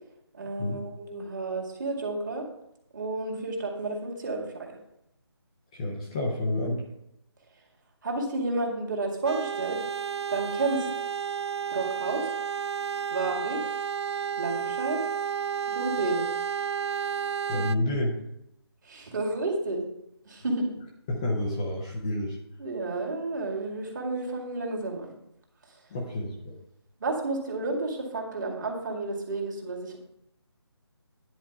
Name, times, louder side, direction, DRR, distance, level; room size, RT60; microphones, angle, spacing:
voice 1, 0.3-2.5 2.9-4.8 8.0-9.9 10.3-10.9 11.7-12.3 13.1-13.6 14.4-15.0 15.7-16.3 18.8-19.8 20.2-20.7 22.6-25.1 25.7-25.9 27.0-30.0, right 2 dB, 45° right, 0 dB, 2.2 m, -31 dB
voice 2, 5.7-6.8 17.5-18.2 21.1-22.4 25.9-26.5, left 1 dB, 15° left, -2 dB, 0.7 m, -29 dB
sound 1, 9.3-17.8, right 7 dB, 75° right, 0.4 m, -31 dB
10.0 x 4.6 x 5.9 m, 0.81 s
figure-of-eight pair, 165°, 14 cm